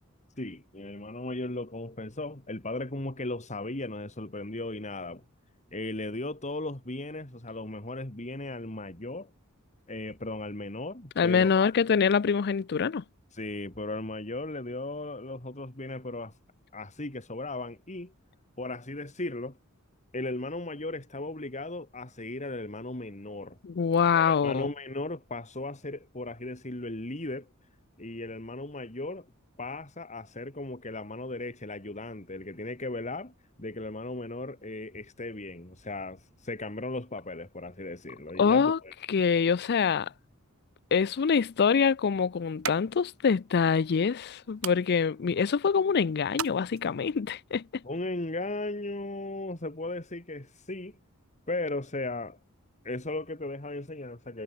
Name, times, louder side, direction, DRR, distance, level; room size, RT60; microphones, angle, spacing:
voice 1, 0.4-5.2 5.7-9.3 9.9-11.7 13.3-16.3 16.7-18.1 18.6-19.6 20.1-23.6 24.1-27.5 28.0-29.3 29.6-33.3 33.6-38.9 47.8-50.9 51.5-52.4 52.8-54.4, left 2 dB, 35° left, 3.0 m, -36 dB
voice 2, 11.2-13.0 23.6-24.7 38.4-38.8 39.1-40.1 40.9-47.6, left 6 dB, 50° left, 0.4 m, -25 dB
sound 1, 40.9-47.2, right 8 dB, 80° right, 4.0 m, -43 dB
head